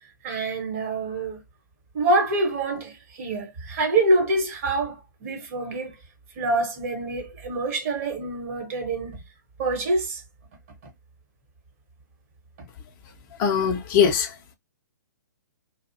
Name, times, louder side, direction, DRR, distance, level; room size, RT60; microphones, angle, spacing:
voice 1, 0.2-1.4 1.9-6.0 6.4-9.2 9.6-10.2, right 2 dB, 45° right, 1.0 m, -26 dB
voice 2, 13.4-14.5, left 7 dB, 30° left, 0.4 m, -22 dB
2.5 x 2.0 x 2.5 m
figure-of-eight pair, 125°, 11 cm